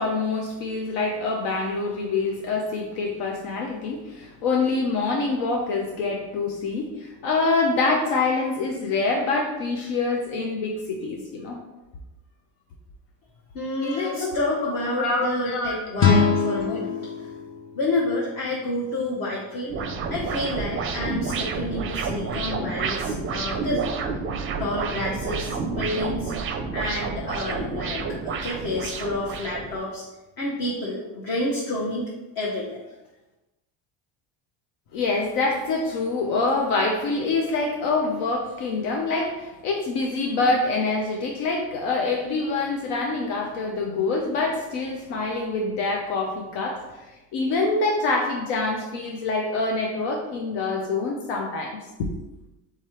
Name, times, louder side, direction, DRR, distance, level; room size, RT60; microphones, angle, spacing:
voice 1, 0.0-11.6 13.8-14.3 15.0-15.8 34.9-46.8 47.3-52.1, left 3 dB, 80° left, 0 dB, 0.8 m, -25 dB
voice 2, 13.5-17.0 17.8-19.8 20.1-23.9 24.6-26.3 26.7-30.0 30.4-32.1 32.3-32.8, left 2 dB, 50° left, -4 dB, 1.0 m, -29 dB
sound 1, 16.0-19.0, left 5 dB, 30° left, 0.5 m, -24 dB
sound 2, 19.7-29.8, right 4 dB, 30° right, 0.4 m, -30 dB
3.6 x 3.2 x 4.3 m, 1.0 s
cardioid pair, 120°, 45 cm